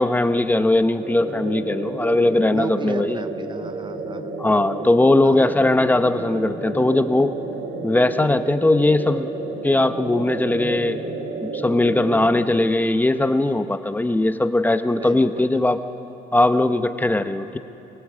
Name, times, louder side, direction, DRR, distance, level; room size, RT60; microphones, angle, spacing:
voice 1, 0.0-3.2 4.4-7.4 7.8-9.3 9.6-11.0 11.5-15.8 16.3-17.6, left 2 dB, 10° left, 10 dB, 0.8 m, -19 dB
sound 1, 1.0-12.3, right 3 dB, 60° right, 3.0 m, -31 dB
voice 2, 2.5-4.3 5.2-5.9 14.9-15.4, right 6 dB, 30° right, 12 dB, 0.5 m, -35 dB
23.0 x 17.0 x 8.4 m, 2.9 s
cardioid pair, 110°, 17 cm